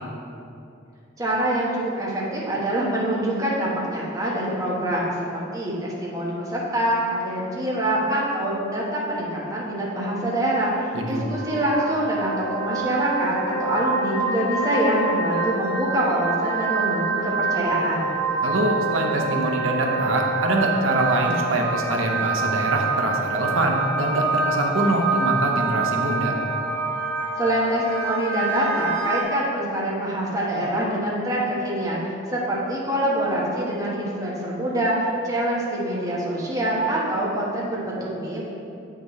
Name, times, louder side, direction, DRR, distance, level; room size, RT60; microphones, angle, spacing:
voice 1, 1.2-18.1 27.4-32.0 32.3-38.4, right 1 dB, 20° right, -6 dB, 1.3 m, -25 dB
voice 2, 10.9-11.3 18.4-26.3, right 1 dB, 80° right, 1 dB, 0.9 m, -24 dB
sound 1, 11.1-29.2, right 3 dB, 25° left, 1.4 m, -26 dB
8.0 x 6.0 x 3.2 m, 2.6 s
head